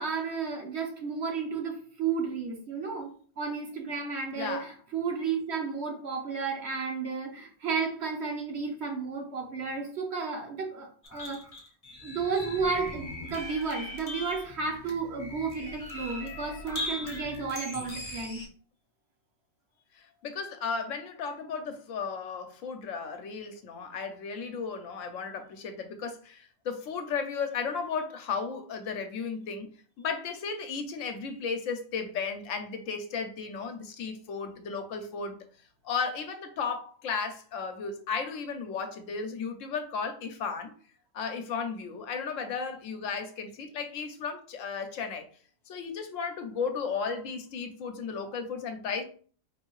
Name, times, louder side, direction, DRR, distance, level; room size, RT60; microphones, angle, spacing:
voice 1, 0.0-11.4 12.0-18.4, right 5 dB, 55° right, 1 dB, 1.1 m, -32 dB
voice 2, 4.4-4.7 19.9-29.7 30.0-35.4 35.8-40.7 41.1-45.3 45.7-49.0, left 5 dB, 75° left, 7 dB, 1.0 m, -34 dB
sound 1, 11.0-18.5, left 1 dB, 35° left, 0.6 m, -40 dB
4.5 x 2.7 x 3.0 m, 0.43 s
omnidirectional pair, 1.4 m